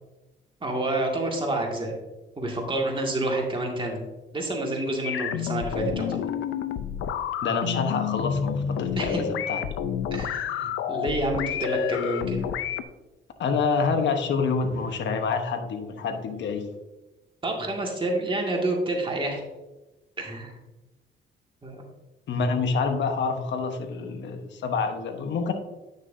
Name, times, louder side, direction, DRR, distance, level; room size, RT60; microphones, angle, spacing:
voice 1, 0.6-1.9 2.4-4.0 4.3-6.2 9.0-9.2 10.1-12.4 17.4-19.4 20.2-20.6 21.6-21.8, right 2 dB, 25° right, -1 dB, 2.1 m, -28 dB
sound 1, 5.0-12.8, left 8 dB, 85° left, 0.5 m, -29 dB
voice 2, 7.4-9.6 13.4-16.7 22.3-25.5, left 5 dB, 65° left, 6 dB, 1.1 m, -27 dB
9.3 x 6.4 x 2.7 m, 1.1 s
cardioid pair, 90°, 20 cm